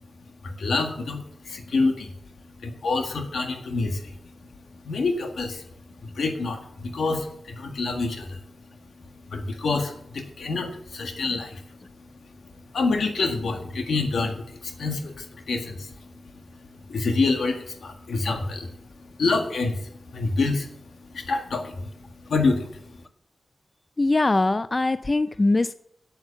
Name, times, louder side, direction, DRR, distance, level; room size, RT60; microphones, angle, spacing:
voice 1, 0.4-2.1 2.6-4.2 4.8-5.6 6.0-8.4 9.3-11.6 12.7-15.9 16.9-18.7 19.2-20.7 21.1-21.9 22.3-22.7, left 3 dB, 85° left, 4 dB, 1.7 m, -27 dB
voice 2, 24.0-25.7, left 2 dB, 30° left, 14 dB, 0.4 m, -22 dB
8.7 x 7.9 x 6.9 m, 0.70 s
cardioid pair, 65°, 0 cm